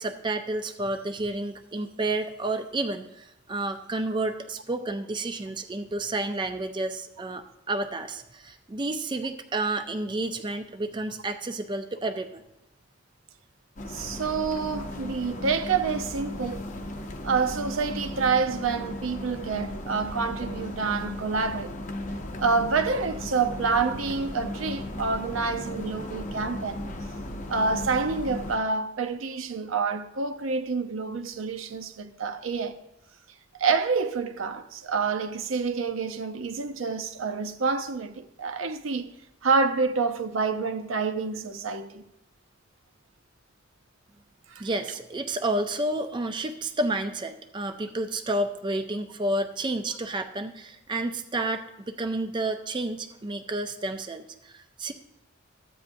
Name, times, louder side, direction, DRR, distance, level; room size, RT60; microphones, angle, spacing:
voice 1, 0.0-12.4 44.6-54.9, right 2 dB, 25° right, 0.4 m, -30 dB
sound 1, 13.8-28.6, left 1 dB, 40° left, 0.6 m, -36 dB
voice 2, 13.9-16.6 17.2-21.7 22.4-26.8 27.5-32.8 33.6-39.1 39.4-42.0 44.5-44.7, right 4 dB, 80° right, 0.6 m, -28 dB
14.0 x 8.5 x 2.6 m
head